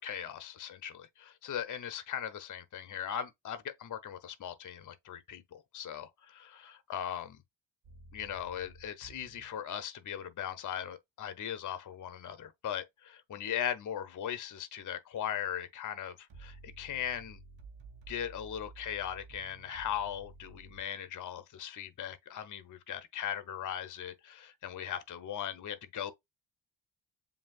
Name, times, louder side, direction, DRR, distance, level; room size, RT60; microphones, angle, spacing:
voice 1, 0.0-7.4 8.1-17.4 18.1-26.1, left 9 dB, 40° left, 0.7 m, -39 dB
sound 1, 7.8-9.5 16.3-20.8, right 3 dB, 60° right, 1.3 m, -52 dB
7.2 x 2.7 x 2.3 m
cardioid pair, 65°, 50 cm